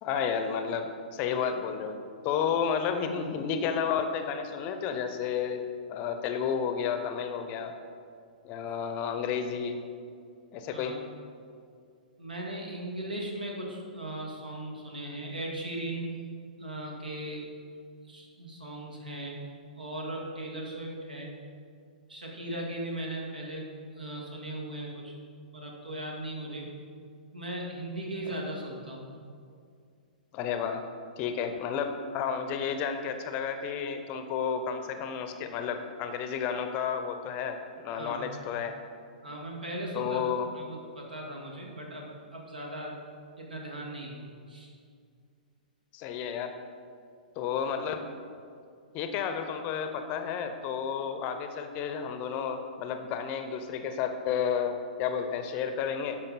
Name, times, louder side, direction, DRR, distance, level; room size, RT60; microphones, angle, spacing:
voice 1, 0.0-2.0 2.2-5.6 5.9-7.7 8.4-9.8 10.5-11.0 28.3-28.4 30.3-30.8 31.2-38.8 39.9-40.5 45.9-46.5 47.4-48.1 48.9-54.7 55.0-56.2, left 7 dB, 30° left, 7 dB, 0.7 m, -31 dB
voice 2, 12.2-17.4 18.0-19.4 19.8-21.3 22.1-23.6 23.9-25.1 25.5-26.7 27.3-29.0 37.9-38.4 39.2-43.0 43.4-44.7, right 1 dB, 75° right, -1 dB, 2.0 m, -38 dB
12.0 x 5.4 x 4.1 m, 2.3 s
figure-of-eight pair, 110°, 5 cm